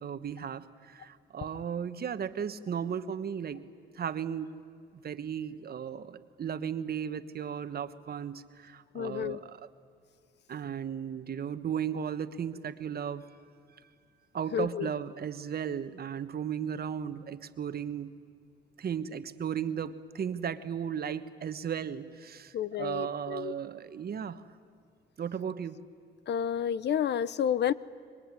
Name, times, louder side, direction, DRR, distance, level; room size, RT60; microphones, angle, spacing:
voice 1, 0.0-3.6 3.9-4.6 5.0-9.6 10.5-13.2 14.3-18.1 18.8-24.4 25.2-25.8, right 8 dB, 50° right, 11 dB, 1.3 m, -35 dB
voice 2, 8.9-9.4 14.5-14.9 22.5-23.6 26.3-27.7, left 9 dB, 60° left, 18 dB, 0.7 m, -30 dB
26.0 x 22.5 x 9.7 m, 2.2 s
cardioid pair, 90°, 20 cm